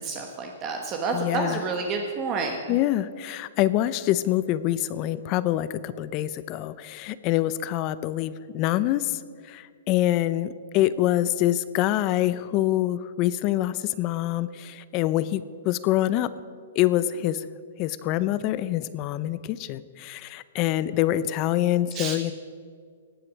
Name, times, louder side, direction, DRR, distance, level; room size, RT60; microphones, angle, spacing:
voice 1, 0.0-2.6 21.9-22.1, right 4 dB, 25° right, 3 dB, 1.2 m, -29 dB
voice 2, 1.1-1.7 2.7-9.2 9.5-16.3 16.8-17.4 17.8-22.3, left 14 dB, 30° left, 16 dB, 0.5 m, -25 dB
18.5 x 7.8 x 6.3 m, 2.1 s
hypercardioid pair, 150°, 0 cm